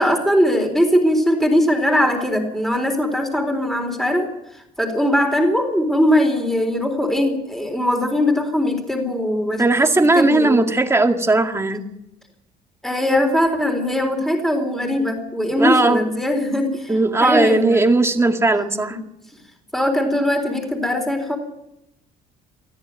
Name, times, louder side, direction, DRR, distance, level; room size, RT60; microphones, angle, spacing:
voice 1, 0.0-9.7 10.2-10.7 12.8-17.8 19.7-21.4, left 1 dB, ahead, 3 dB, 4.1 m, -20 dB
voice 2, 9.6-11.9 15.6-16.0 16.9-19.0, right 2 dB, 15° right, 5 dB, 2.1 m, -17 dB
21.5 x 14.0 x 9.1 m, 0.87 s
cardioid pair, 110°, 17 cm